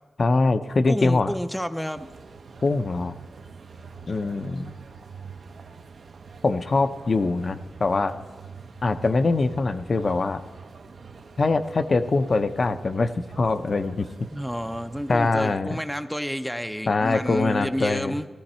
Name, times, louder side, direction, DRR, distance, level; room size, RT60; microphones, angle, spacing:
voice 1, 0.2-1.3 2.6-3.2 4.1-4.7 6.4-8.2 8.8-10.4 11.4-13.1 13.4-14.3 15.1-15.8 16.9-18.1, left 3 dB, 45° left, 9 dB, 0.5 m, -23 dB
voice 2, 0.9-2.1 14.3-18.4, equal, ahead, 9 dB, 0.5 m, -30 dB
sound 1, 1.9-15.6, right 5 dB, 70° right, 0.8 m, -44 dB
14.5 x 14.0 x 4.3 m, 1.3 s
wide cardioid pair, 90°, 0 cm